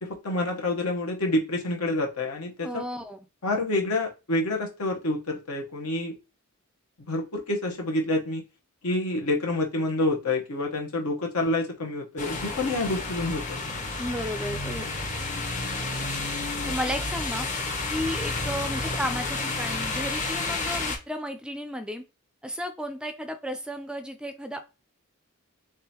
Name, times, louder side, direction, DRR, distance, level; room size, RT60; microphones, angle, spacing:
voice 1, 0.0-2.8 3.4-6.2 7.1-8.4 8.8-13.6, left 2 dB, 80° left, 1 dB, 1.0 m, -28 dB
voice 2, 2.6-3.2 14.0-14.9 16.7-17.5 17.9-22.0 22.4-24.6, equal, 5° right, 8 dB, 0.3 m, -33 dB
sound 1, 12.2-21.0, left 3 dB, 35° left, 0.8 m, -31 dB
3.6 x 3.3 x 2.8 m, 0.29 s
head